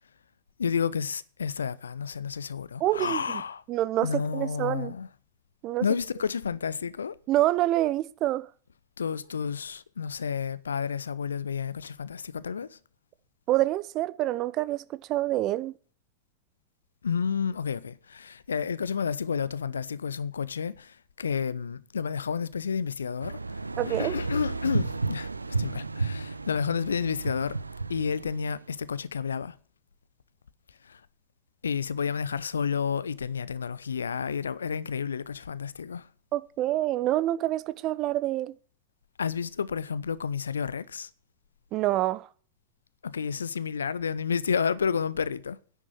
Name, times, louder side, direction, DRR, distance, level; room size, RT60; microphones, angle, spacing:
voice 1, 0.6-3.6 4.0-5.1 5.8-7.2 9.0-12.8 17.0-23.4 23.9-25.3 25.6-27.6 27.9-29.5 30.9-31.0 31.6-36.1 39.2-41.1 43.0-45.6, left 6 dB, 70° left, 0.6 m, -30 dB
voice 2, 2.8-3.4 3.7-4.9 5.6-5.9 7.3-8.5 13.5-15.7 23.8-24.2 36.3-38.5 41.7-42.3, right 15 dB, 35° right, 0.7 m, -27 dB
sound 1, 23.2-28.7, right 3 dB, 80° right, 0.5 m, -32 dB
10.5 x 7.3 x 8.8 m
figure-of-eight pair, 90°, 0 cm